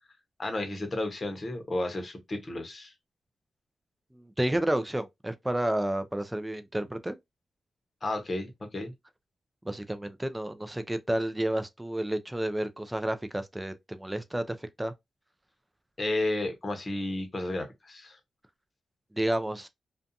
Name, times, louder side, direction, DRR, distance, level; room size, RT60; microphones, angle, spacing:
voice 1, 0.4-2.9 8.0-8.9 16.0-18.2, left 2 dB, 40° left, 0.8 m, -32 dB
voice 2, 4.1-7.2 9.6-14.9 19.1-19.7, right 1 dB, 10° right, 0.4 m, -31 dB
2.5 x 2.3 x 2.5 m
cardioid pair, 70°, 0 cm